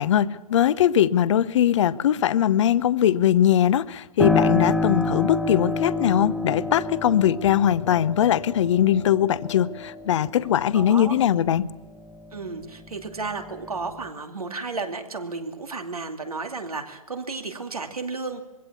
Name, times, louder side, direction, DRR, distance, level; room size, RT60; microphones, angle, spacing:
voice 1, 0.0-11.7, left 10 dB, 55° left, 15 dB, 0.9 m, -21 dB
Piano, 4.2-12.6 13.0-14.1, left 2 dB, ahead, 1.1 m, -29 dB
voice 2, 10.7-11.1 12.3-18.4, right 4 dB, 90° right, 4 dB, 2.6 m, -33 dB
22.5 x 16.5 x 7.1 m, 1.1 s
hypercardioid pair, 125°, 18 cm